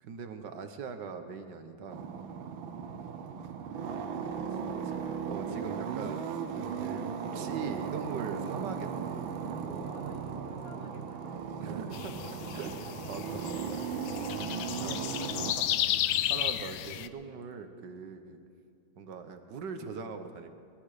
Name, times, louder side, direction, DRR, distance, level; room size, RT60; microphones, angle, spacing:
voice 1, 0.0-2.1 4.9-5.0 5.3-6.3 6.8-9.1 11.6-12.2 12.5-13.8 14.8-15.0 15.5-15.6 16.3-18.4 19.0-20.5, right 5 dB, 65° right, 7 dB, 1.6 m, -41 dB
sound 1, 1.9-15.5, right 7 dB, 90° right, 1.6 m, -37 dB
voice 2, 4.5-4.9 9.6-11.4 14.8-15.8, left 2 dB, 30° left, 2 dB, 1.8 m, -50 dB
sound 2, 11.9-17.1, left 12 dB, 75° left, 1.1 m, -33 dB
20.0 x 14.0 x 5.0 m, 2.4 s
omnidirectional pair, 2.1 m